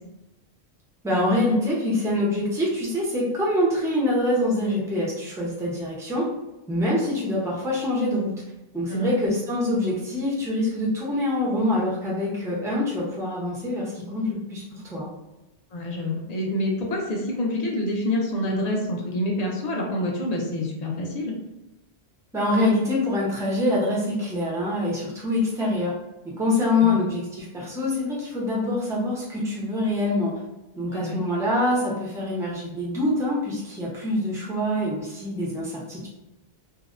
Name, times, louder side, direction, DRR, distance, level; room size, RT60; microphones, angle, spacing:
voice 1, 1.0-6.3 6.7-8.3 8.7-14.6 14.9-15.1 22.3-25.9 26.4-30.3 30.8-36.1, left 1 dB, 5° right, -5 dB, 0.4 m, -25 dB
voice 2, 15.7-21.4 26.8-26.9 30.9-31.2, left 1 dB, 50° left, -1 dB, 0.5 m, -27 dB
2.6 x 2.0 x 2.4 m, 0.98 s
omnidirectional pair, 1.1 m